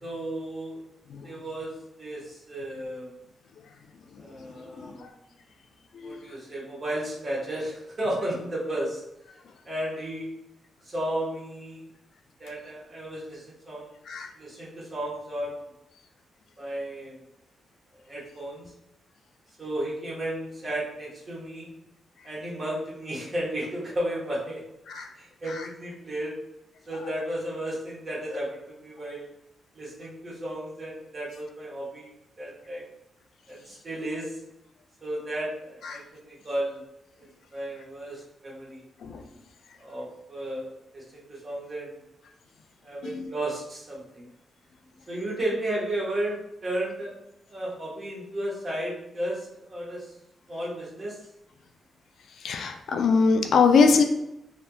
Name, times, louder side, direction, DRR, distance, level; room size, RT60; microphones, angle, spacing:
voice 1, 0.0-0.8 1.2-3.1 4.2-5.1 6.0-9.0 9.6-10.3 10.8-11.9 12.4-14.0 14.4-15.5 16.6-17.2 18.1-18.7 19.6-21.7 22.2-24.6 25.2-26.4 26.9-29.3 29.7-32.1 32.4-32.8 33.5-34.4 35.0-36.8 37.2-38.8 39.8-42.0 42.8-44.3 45.1-47.1 47.5-50.1 50.5-51.2, right 1 dB, 30° right, -6 dB, 1.1 m, -33 dB
voice 2, 4.5-5.1 5.9-6.2 14.1-14.3 24.9-25.1 25.5-25.7 28.3-28.5 35.8-36.0 39.0-39.2 43.0-43.3 52.4-54.0, left 5 dB, 70° left, 5 dB, 0.3 m, -23 dB
3.3 x 2.7 x 2.2 m, 0.84 s
wide cardioid pair, 135°, 0 cm